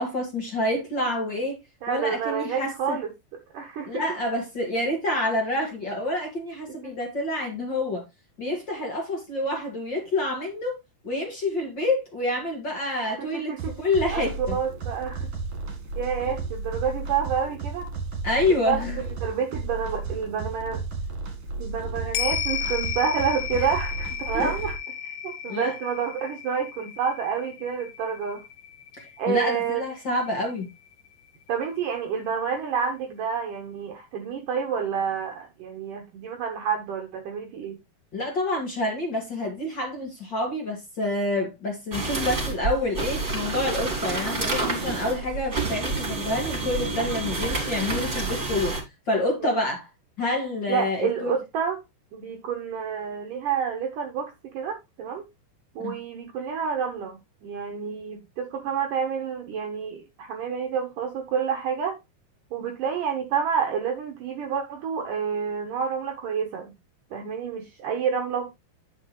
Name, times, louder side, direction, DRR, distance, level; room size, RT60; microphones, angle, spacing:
voice 1, 0.0-1.6 1.9-3.0 3.9-8.0 8.4-10.7 11.0-13.5 13.8-14.6 18.2-19.0 24.3-24.5 25.5-25.7 29.0-30.6 38.1-48.8 49.1-49.9 50.2-51.3 55.8-55.9, left 1 dB, 40° left, 1.7 m, -27 dB
voice 2, 1.8-3.1 3.5-4.0 6.8-6.9 13.1-13.7 14.1-15.3 16.0-17.9 18.5-18.8 19.2-20.8 21.6-24.7 25.0-28.4 29.2-29.8 31.5-37.8 49.4-49.6 50.7-51.8 52.1-55.2 55.8-62.0 62.5-66.7 67.1-68.5, right 7 dB, 70° right, 2.1 m, -29 dB
sound 1, 13.6-24.8, right 3 dB, 40° right, 2.7 m, -33 dB
sound 2, 22.1-30.7 31.1-31.2, left 8 dB, 75° left, 2.8 m, -34 dB
sound 3, 41.9-48.8, right 3 dB, 20° right, 3.0 m, -29 dB
9.8 x 6.5 x 3.0 m
omnidirectional pair, 5.0 m